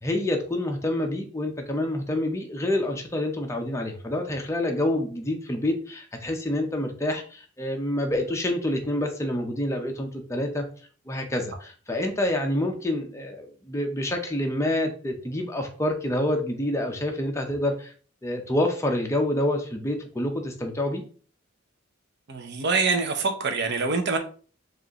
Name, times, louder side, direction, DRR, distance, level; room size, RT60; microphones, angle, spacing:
voice 1, 0.0-10.7 11.1-17.9 18.2-21.0, left 1 dB, 15° left, 0.6 m, -27 dB
voice 2, 22.3-24.2, right 4 dB, 55° right, 0.6 m, -25 dB
4.8 x 2.5 x 2.9 m
head